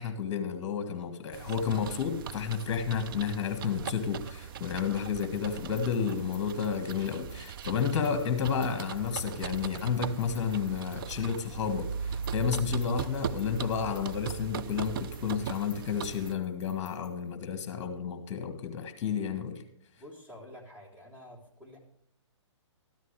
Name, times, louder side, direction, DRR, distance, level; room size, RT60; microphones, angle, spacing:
voice 1, 0.0-19.6, left 6 dB, 35° left, 8 dB, 1.7 m, -31 dB
sound 1, 1.3-16.3, right 8 dB, 45° right, 0.6 m, -39 dB
sound 2, 5.0-11.7 12.1-17.3, left 5 dB, 10° left, 4.2 m, -58 dB
voice 2, 20.0-21.8, left 1 dB, 10° right, -2 dB, 3.4 m, -49 dB
13.5 x 13.5 x 3.3 m, 0.74 s
hypercardioid pair, 135°, 16 cm